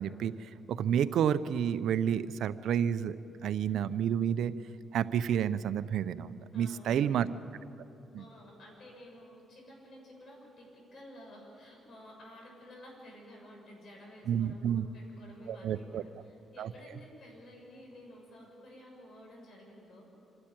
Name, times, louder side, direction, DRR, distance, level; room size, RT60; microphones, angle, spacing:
voice 1, 0.0-3.2 3.4-4.5 4.9-7.3 8.1-8.2 14.3-14.9 15.5-16.0 16.6-16.7, right 9 dB, 75° right, 13 dB, 0.6 m, -30 dB
voice 2, 6.5-7.4 8.2-20.2, equal, 55° left, 0 dB, 6.9 m, -52 dB
26.0 x 12.5 x 8.9 m, 2.8 s
cardioid pair, 90°, 0 cm